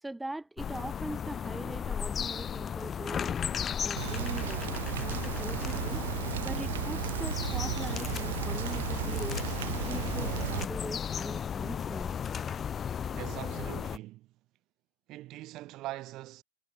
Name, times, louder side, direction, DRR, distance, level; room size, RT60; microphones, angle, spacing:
voice 1, 0.0-3.4 3.8-6.0 6.4-9.5 9.9-12.1, right 2 dB, 5° right, 5.2 m, -41 dB
sound 1, 0.6-14.0, left 8 dB, 20° left, 6.4 m, -35 dB
Rain, 4.0-10.6, right 12 dB, 60° right, 1.2 m, -34 dB
voice 2, 13.1-14.3 15.1-16.4, right 17 dB, 35° right, 5.5 m, -42 dB
figure-of-eight pair, 90°, 0 cm